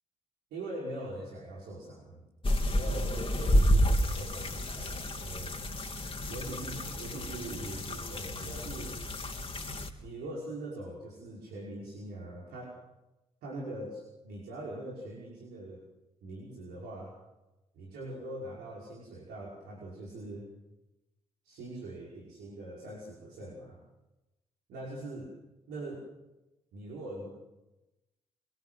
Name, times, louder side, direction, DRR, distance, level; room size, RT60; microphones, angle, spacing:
voice 1, 0.5-2.3 2.7-5.6 6.3-9.0 10.0-12.8 13.4-15.8 16.2-17.2 17.7-20.5 21.4-23.8 24.7-25.3 25.7-26.0 26.7-27.3, right 1 dB, 70° right, -3 dB, 5.5 m, -42 dB
sound 1, 2.4-9.9, equal, 30° left, 3.7 m, -30 dB
25.5 x 24.5 x 7.8 m, 0.98 s
figure-of-eight pair, 40°, 17 cm